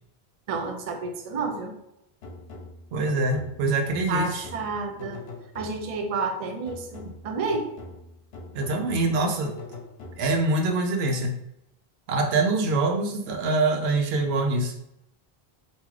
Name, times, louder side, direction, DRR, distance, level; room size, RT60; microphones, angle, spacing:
voice 1, 0.5-1.7 4.1-5.2 5.5-7.7, right 3 dB, 50° right, 4 dB, 0.4 m, -30 dB
sound 1, 2.2-6.1 6.7-10.5, left 2 dB, 75° left, 0.9 m, -43 dB
voice 2, 2.9-4.5 8.5-9.5 10.2-11.3 12.1-14.7, right 2 dB, 80° right, 3 dB, 0.9 m, -24 dB
3.5 x 2.6 x 3.1 m, 0.82 s
omnidirectional pair, 1.1 m